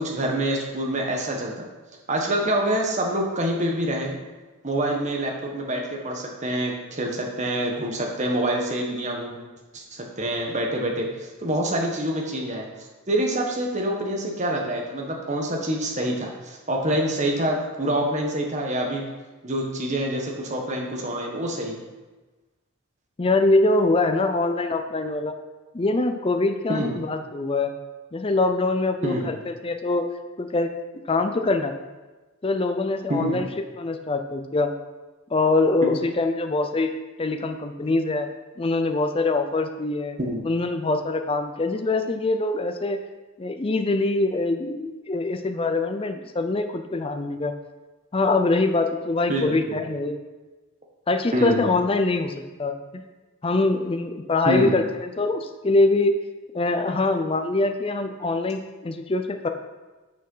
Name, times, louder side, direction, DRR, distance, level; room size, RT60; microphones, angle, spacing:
voice 1, 0.0-1.6 2.1-4.2 4.6-9.4 9.7-12.7 13.1-19.0 19.4-21.8 26.7-27.0 29.0-29.3 33.1-33.4 35.8-35.9 40.2-40.4 49.3-49.8 51.3-51.7 54.4-54.8, right 1 dB, 35° right, 0 dB, 1.3 m, -26 dB
voice 2, 23.2-25.4 25.7-27.7 28.1-30.0 30.4-30.7 31.1-31.7 32.4-33.5 33.8-34.7 35.3-36.9 37.2-38.3 38.6-40.2 40.4-43.0 43.4-47.5 48.1-50.2 51.1-52.3 52.6-53.0 53.4-56.1 56.5-59.5, left 2 dB, 25° left, 7 dB, 0.5 m, -23 dB
6.5 x 6.3 x 5.5 m, 1.2 s
head